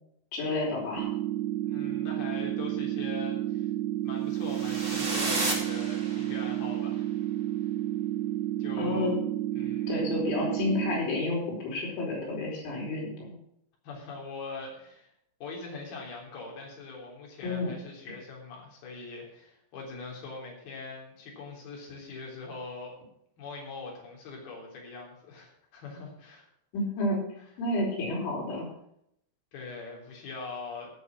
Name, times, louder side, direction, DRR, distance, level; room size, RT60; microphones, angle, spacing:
voice 1, 0.3-1.1 8.8-9.2 9.9-13.4 17.4-17.7 26.7-27.2 27.6-28.7, left 2 dB, 85° left, -3 dB, 6.9 m, -30 dB
sound 1, 1.0-11.0, right 14 dB, 80° right, 2.9 m, -31 dB
voice 2, 1.7-3.7 4.0-7.1 7.6-7.7 8.6-9.1 9.5-9.9 13.8-15.1 15.4-22.9 23.4-26.5 27.4-27.5 29.5-30.9, left 4 dB, 55° left, -1 dB, 5.3 m, -42 dB
sound 2, 4.4-6.6, right 2 dB, 20° right, 1.8 m, -33 dB
16.0 x 6.8 x 6.2 m, 0.74 s
omnidirectional pair, 5.3 m